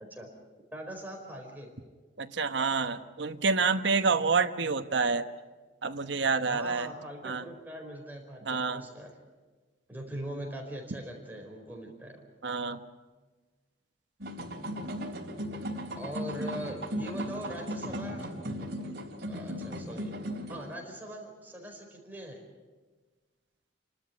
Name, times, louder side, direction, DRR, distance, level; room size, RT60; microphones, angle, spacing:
voice 1, 0.7-1.7 6.5-9.1 9.9-12.2 16.0-18.4 19.3-20.2 20.5-22.4, right 1 dB, 10° right, 0 dB, 4.6 m, -41 dB
voice 2, 2.2-5.3 5.8-6.9 7.2-7.4 8.5-8.9 12.4-12.8, right 4 dB, 75° right, 8 dB, 1.1 m, -28 dB
sound 1, 14.2-20.7, equal, 55° right, 3.3 m, -36 dB
29.5 x 13.0 x 9.6 m, 1.3 s
head